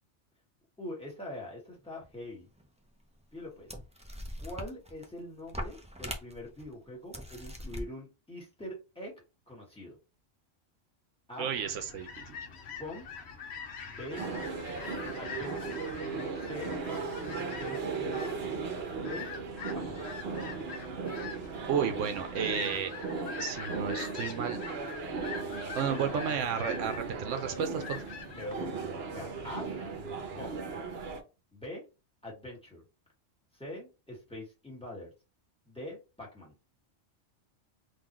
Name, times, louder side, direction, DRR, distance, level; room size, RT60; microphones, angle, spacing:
voice 1, 0.8-2.5 3.3-3.7 4.4-9.1 9.5-10.0 11.3-11.5 12.8-13.1 13.8-14.2 15.2-15.8 16.4-16.7 17.3-18.4 19.0-19.3 19.7-20.1 28.4-29.8 30.3-30.6 31.5-31.8 32.2-32.8 33.5-35.1 35.7-36.5, left 1 dB, 5° left, -4 dB, 1.7 m, -43 dB
sound 1, 2.6-2.7 3.4-3.5 3.7-5.1 5.5-6.6 7.1-7.8, equal, 10° right, 0.3 m, -40 dB
voice 2, 11.4-12.4 21.7-23.1 23.4-24.6 25.7-28.0, right 7 dB, 85° right, 8 dB, 1.0 m, -33 dB
sound 2, 11.5-28.7, left 6 dB, 65° left, 1.0 m, -44 dB
sound 3, 14.1-31.2, right 4 dB, 60° right, 1.0 m, -37 dB
3.8 x 2.8 x 3.0 m, 0.28 s
omnidirectional pair, 1.2 m